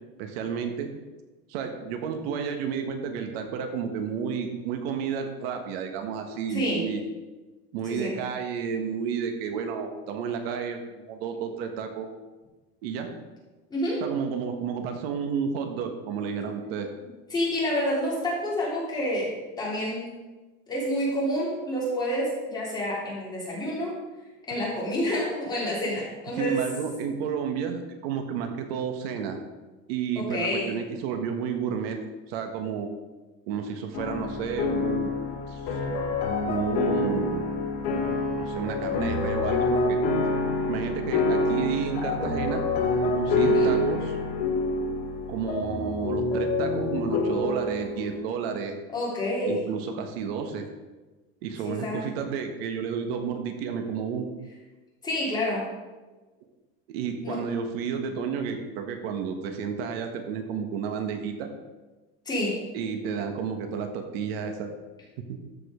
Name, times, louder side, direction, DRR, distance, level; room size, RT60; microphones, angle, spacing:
voice 1, 0.2-0.9 1.5-7.0 7.7-12.1 12.8-13.1 14.0-16.9 26.4-29.4 29.9-32.9 33.5-35.1 35.5-35.8 36.4-37.4 38.4-40.0 40.7-42.6 43.0-44.1 45.3-48.7 49.4-50.7 51.4-54.2 56.9-61.5 62.7-64.7 65.3-65.4, right 6 dB, 80° right, 5 dB, 1.4 m, -31 dB
voice 2, 6.5-6.8 7.8-8.1 13.7-14.0 17.3-20.1 20.7-24.0 24.5-26.6 30.1-30.7 43.4-43.7 48.9-49.6 51.6-52.1 55.0-55.6 57.2-57.4 62.2-62.6, equal, 15° left, -6 dB, 3.1 m, -28 dB
sound 1, 33.9-48.2, left 2 dB, 85° left, 2.5 m, -27 dB
13.5 x 5.2 x 5.1 m, 1.2 s
cardioid pair, 175°, 30 cm